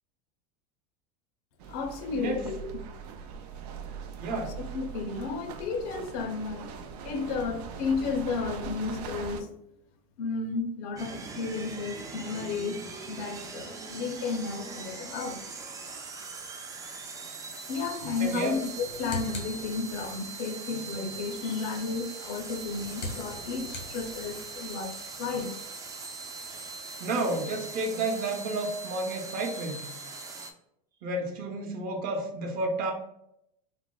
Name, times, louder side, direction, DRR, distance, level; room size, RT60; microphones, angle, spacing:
sound 1, 1.6-9.4, right 6 dB, 80° right, 0.4 m, -41 dB
voice 1, 1.7-2.7 4.3-6.7 7.0-9.5 10.2-12.8 13.1-15.4 17.7-25.5, left 4 dB, 65° left, 0.5 m, -33 dB
voice 2, 4.2-4.5 18.2-18.6 26.5-26.7 27.0-29.8 31.0-32.9, right 2 dB, 45° right, 0.7 m, -31 dB
sound 2, 11.0-30.5, right 4 dB, 15° right, 0.3 m, -41 dB
sound 3, 18.6-20.3 22.3-24.6, left 2 dB, 90° left, 1.0 m, -41 dB
4.0 x 2.0 x 2.3 m
supercardioid pair, 115°, 21 cm